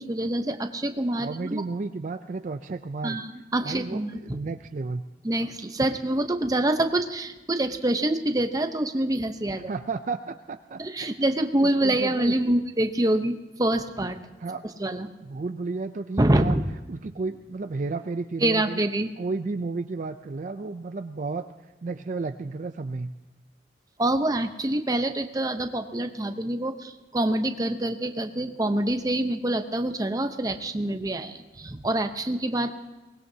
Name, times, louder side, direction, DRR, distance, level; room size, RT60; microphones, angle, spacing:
voice 1, 0.0-1.6 3.0-4.2 5.2-9.7 10.8-14.2 14.8-15.1 16.2-16.6 18.4-19.1 24.0-32.7, right 1 dB, 20° right, 7 dB, 0.8 m, -26 dB
voice 2, 1.2-3.2 3.6-5.0 9.7-11.1 11.6-12.6 14.4-14.6 15.2-16.6 16.9-18.8 19.2-23.1, right 3 dB, 45° right, 8 dB, 0.4 m, -33 dB
23.5 x 19.5 x 2.8 m, 1.1 s
head